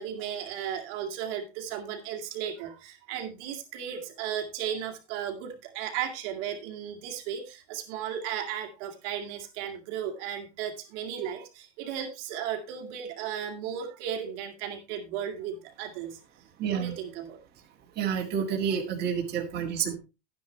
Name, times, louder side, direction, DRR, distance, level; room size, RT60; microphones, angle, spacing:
voice 1, 0.0-16.2 16.7-17.4, right 9 dB, 50° right, 3 dB, 2.1 m, -35 dB
voice 2, 16.6-17.0 18.0-20.0, right 7 dB, 25° right, -1 dB, 2.0 m, -29 dB
11.5 x 9.7 x 3.2 m, 0.27 s
supercardioid pair, 155°, 36 cm